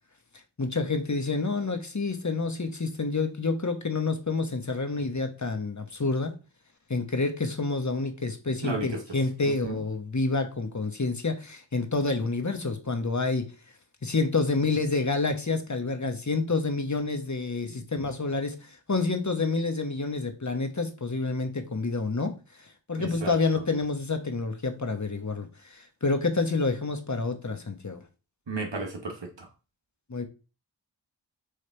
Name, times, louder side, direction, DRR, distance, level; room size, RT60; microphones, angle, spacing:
voice 1, 0.6-6.3 6.9-13.4 14.0-22.3 22.9-28.0 30.1-30.2, left 3 dB, 40° left, 1.2 m, -28 dB
voice 2, 8.6-9.0 9.4-9.8 17.7-17.8 22.9-23.3 28.5-29.5, right 3 dB, 65° right, 1.5 m, -34 dB
6.7 x 3.5 x 4.5 m
wide cardioid pair, 55°, 46 cm